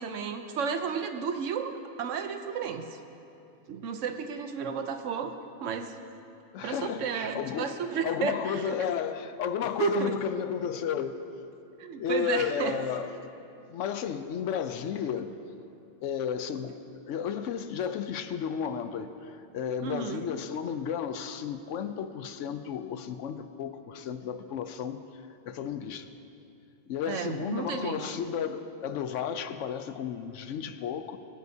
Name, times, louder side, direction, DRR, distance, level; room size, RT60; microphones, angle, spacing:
voice 1, 0.0-3.0 3.7-5.3 5.6-5.9 6.6-8.7 9.8-10.1 11.8-12.8 19.8-20.2 27.1-28.1, right 6 dB, 85° right, 7 dB, 1.1 m, -32 dB
voice 2, 6.5-11.2 12.0-13.2 13.7-15.4 16.0-16.8 17.1-25.0 25.4-26.1 26.9-31.2, left 8 dB, 80° left, 10 dB, 0.9 m, -33 dB
22.5 x 9.4 x 2.7 m, 2.8 s
omnidirectional pair, 1.3 m